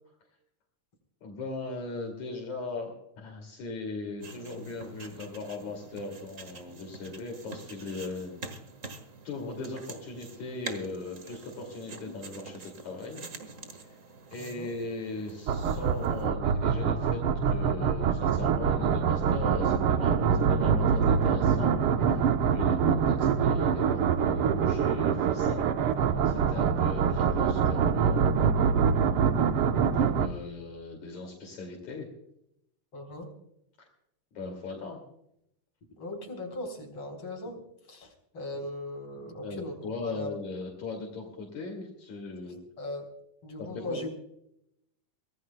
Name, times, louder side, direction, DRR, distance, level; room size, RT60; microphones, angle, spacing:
voice 1, 1.2-8.4 9.3-13.3 13.9-14.0 14.3-25.6 26.0-28.3 29.9-32.1 33.8-33.9 34.3-35.0 39.4-42.6 43.6-44.1, left 3 dB, 65° left, 1 dB, 3.7 m, -39 dB
sound 1, 4.2-16.3, right 3 dB, 40° right, 1.2 m, -46 dB
voice 2, 14.4-14.7 32.9-33.3 36.0-37.6 37.9-40.3 42.4-43.1 43.4-44.1, left 1 dB, 40° left, 2 dB, 4.8 m, -39 dB
sound 2, 15.5-30.3, right 6 dB, 90° right, 1.2 m, -25 dB
24.0 x 18.0 x 2.2 m, 0.77 s
omnidirectional pair, 3.6 m